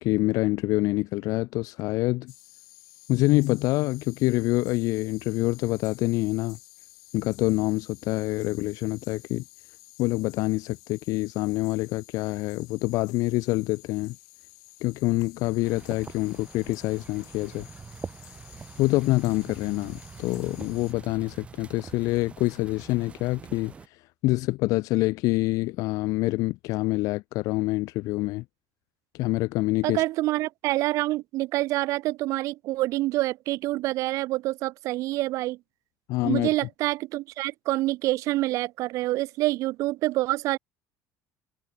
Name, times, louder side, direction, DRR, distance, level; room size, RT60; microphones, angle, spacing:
voice 1, 0.0-2.3 3.1-6.6 7.1-9.4 10.0-14.2 14.8-17.7 18.8-28.4 29.1-30.0 36.1-36.5, left 20 dB, 60° left, 0.4 m, -26 dB
sound 1, 2.3-20.9, left 27 dB, 80° left, 3.8 m, -52 dB
sound 2, 15.6-23.9, right 5 dB, 20° right, 1.2 m, -44 dB
voice 2, 29.8-35.6 36.2-40.6, right 17 dB, 50° right, 0.4 m, -27 dB
cardioid pair, 175°, 7 cm